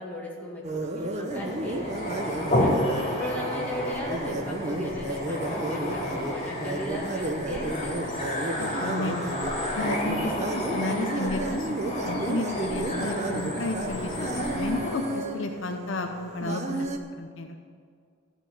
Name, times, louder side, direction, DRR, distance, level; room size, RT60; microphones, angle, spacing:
voice 1, 0.0-8.1, left 1 dB, 5° left, -5 dB, 2.3 m, -37 dB
sound 1, 0.6-17.0, right 2 dB, 30° right, 0.7 m, -33 dB
sound 2, 1.3-15.3, left 1 dB, 25° left, 3.3 m, -31 dB
voice 2, 8.6-9.4 9.8-11.7 12.0-16.9 17.2-17.6, left 2 dB, 60° left, 5 dB, 0.7 m, -32 dB
13.5 x 6.0 x 8.5 m, 2.1 s
head